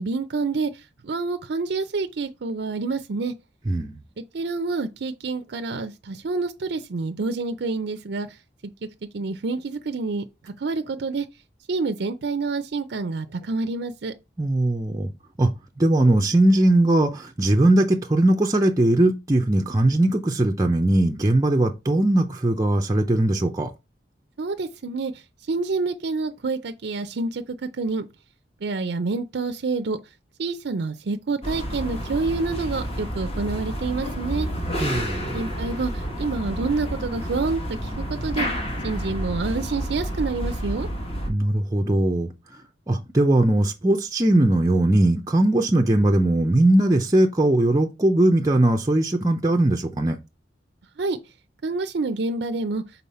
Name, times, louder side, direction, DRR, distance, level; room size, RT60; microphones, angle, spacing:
voice 1, 0.0-3.3 4.3-8.4 9.1-11.3 11.7-14.1 24.4-28.0 28.6-30.0 30.4-34.5 35.3-38.5 38.8-40.9 51.0-51.2 51.6-52.8, right 3 dB, 65° right, 0.5 m, -28 dB
voice 2, 3.7-4.0 14.4-15.1 15.4-15.5 15.8-23.7 34.8-35.4 41.3-42.3 42.9-50.2, right 1 dB, 20° right, 0.5 m, -20 dB
sound 1, 31.4-41.3, equal, 35° left, 1.4 m, -30 dB
5.5 x 4.1 x 4.2 m
head